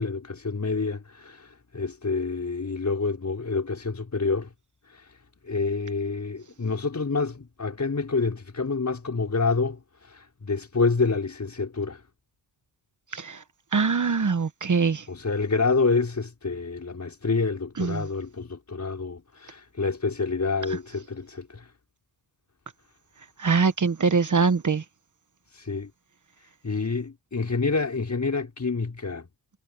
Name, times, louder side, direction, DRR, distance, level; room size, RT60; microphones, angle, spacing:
voice 1, 0.0-4.5 4.9-5.2 5.4-12.0 15.1-21.7 25.5-25.9 26.6-29.3, left 4 dB, 35° left, 5.1 m, -28 dB
voice 2, 13.7-15.0 17.8-18.1 23.4-24.8, right 5 dB, 40° right, 1.2 m, -23 dB
wide cardioid pair, 115°, 47 cm